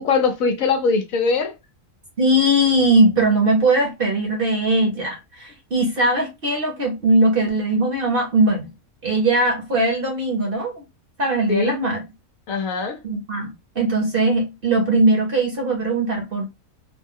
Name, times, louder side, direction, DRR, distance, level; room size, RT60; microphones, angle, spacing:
voice 1, 0.0-1.5 11.5-11.8 12.5-13.0, left 4 dB, 65° left, 1.0 m, -21 dB
voice 2, 2.2-8.7 9.0-10.8 11.2-12.0 13.0-16.4, right 2 dB, 45° right, 0.9 m, -20 dB
3.1 x 2.0 x 3.5 m
omnidirectional pair, 1.6 m